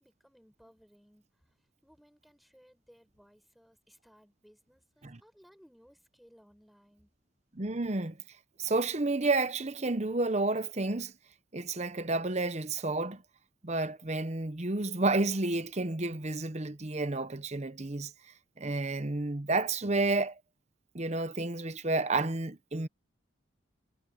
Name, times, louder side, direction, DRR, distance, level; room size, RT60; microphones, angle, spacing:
voice 1, 0.0-7.1, equal, ahead, 6.6 m, -62 dB
voice 2, 7.5-8.2 8.6-11.1 11.5-13.2 13.6-18.1 18.6-20.4 20.9-22.9, right 2 dB, 35° right, 0.9 m, -30 dB
head